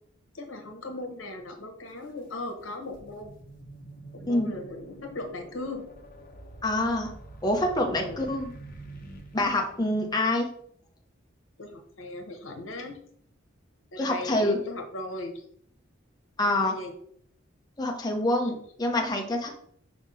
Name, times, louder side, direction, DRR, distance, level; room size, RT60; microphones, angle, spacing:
voice 1, 0.3-3.3 4.1-5.8 7.9-8.2 11.6-13.0 13.9-15.4 16.5-16.9 18.4-18.5, left 2 dB, 80° left, 4 dB, 1.2 m, -38 dB
sound 1, 1.9-2.0 2.5-10.2, right 2 dB, 45° left, 1.2 m, -47 dB
voice 2, 6.6-7.1 7.4-8.5 9.3-10.5 14.0-14.6 16.4-16.8 17.8-19.5, left 1 dB, 20° left, 1 dB, 0.8 m, -26 dB
5.0 x 3.6 x 5.4 m, 0.63 s
head